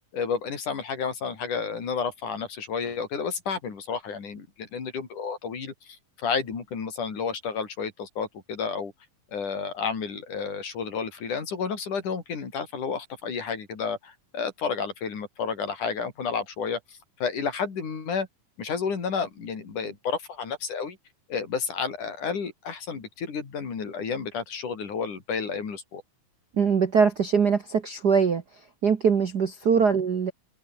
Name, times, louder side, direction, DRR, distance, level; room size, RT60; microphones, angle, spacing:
voice 1, 0.1-8.9 9.3-18.3 18.6-21.0 21.3-26.0, left 6 dB, 80° left, 5.6 m, -31 dB
voice 2, 26.6-28.4 28.8-30.3, right 6 dB, 50° right, 1.2 m, -22 dB
open air
omnidirectional pair, 3.5 m